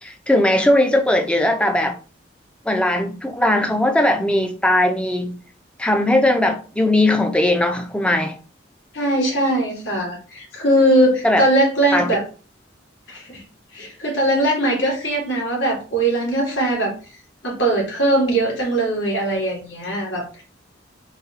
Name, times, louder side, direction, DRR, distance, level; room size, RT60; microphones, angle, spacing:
voice 1, 0.0-2.0 2.7-5.4 5.8-8.4 11.2-11.4 11.9-12.1, left 1 dB, 5° left, 0.5 m, -19 dB
voice 2, 8.9-12.2 13.1-13.4 13.7-16.9 17.4-20.4, right 1 dB, 80° left, 2.2 m, -20 dB
4.0 x 2.3 x 4.1 m
head